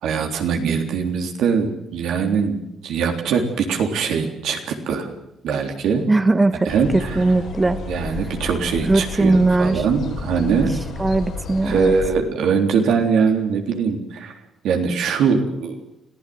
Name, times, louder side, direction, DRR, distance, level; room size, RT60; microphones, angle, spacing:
voice 1, 0.0-2.6 2.8-5.1 5.4-6.1 6.7-7.2 7.9-10.8 11.6-14.3 14.6-15.8, right 6 dB, 80° right, 4 dB, 3.6 m, -22 dB
voice 2, 6.1-7.8 8.9-9.8 10.7-11.9, right 2 dB, 20° right, 10 dB, 1.3 m, -19 dB
sound 1, 6.7-12.1, left 4 dB, 75° left, 5.9 m, -32 dB
25.5 x 15.5 x 7.9 m, 0.84 s
cardioid pair, 90°, 0 cm